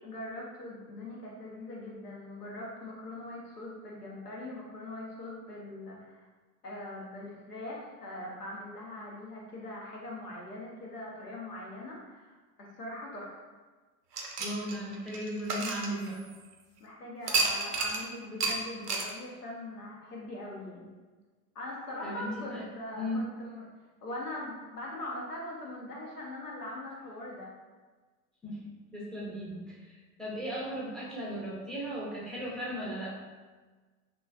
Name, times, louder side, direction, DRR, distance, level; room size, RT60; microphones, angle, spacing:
voice 1, 0.0-6.3 6.6-13.5 16.8-20.9 21.5-23.7 24.0-27.5, left 1 dB, 90° left, -3 dB, 0.8 m, -41 dB
sound 1, 14.1-16.5 17.3-18.0 18.4-18.6 18.9-19.1, right 3 dB, 85° right, 0.6 m, -31 dB
voice 2, 14.4-16.2 22.0-22.7 22.9-23.2 28.4-33.2, equal, ahead, -5 dB, 0.5 m, -37 dB
3.0 x 2.6 x 2.3 m, 1.3 s
figure-of-eight pair, 85°, 45 cm